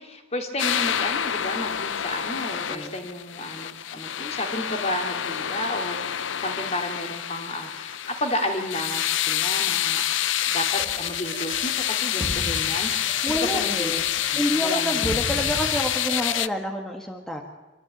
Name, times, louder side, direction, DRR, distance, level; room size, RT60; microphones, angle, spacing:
voice 1, 0.0-10.1 10.4-15.2, left 1 dB, 35° left, 4 dB, 2.7 m, -32 dB
sound 1, 0.6-16.5, left 11 dB, 70° left, 0.6 m, -27 dB
sound 2, 10.8-16.4, right 1 dB, 25° right, 1.3 m, -36 dB
voice 2, 13.2-14.0 14.3-17.4, equal, ahead, 1 dB, 1.7 m, -28 dB
25.5 x 13.5 x 9.3 m, 1.1 s
head